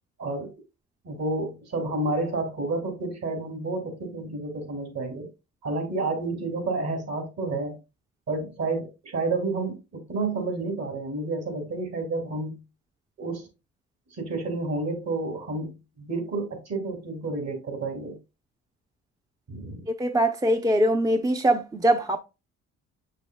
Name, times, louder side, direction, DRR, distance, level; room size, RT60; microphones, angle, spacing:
voice 1, 0.2-0.5 1.0-5.3 5.6-7.7 8.3-12.6 13.2-13.5 14.1-18.2 19.5-19.8, right 3 dB, 60° right, 2.8 m, -30 dB
voice 2, 20.0-22.2, right 1 dB, 10° right, 0.5 m, -22 dB
6.8 x 6.5 x 2.2 m
cardioid pair, 90°, 30 cm